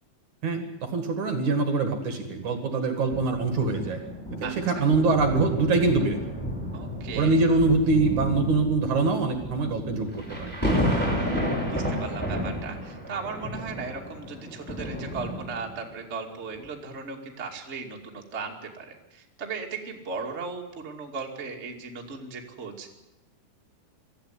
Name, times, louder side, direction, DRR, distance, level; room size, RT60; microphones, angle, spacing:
voice 1, 0.4-4.0 4.4-6.2 7.1-10.5, right 3 dB, 50° right, 5 dB, 2.7 m, -24 dB
sound 1, 3.1-15.9 16.5-16.7, equal, ahead, 4.9 m, -32 dB
voice 2, 4.4-4.9 6.7-7.4 11.1-23.0, right 4 dB, 25° right, 0 dB, 1.6 m, -37 dB
24.5 x 14.0 x 9.7 m, 1.0 s
omnidirectional pair, 5.2 m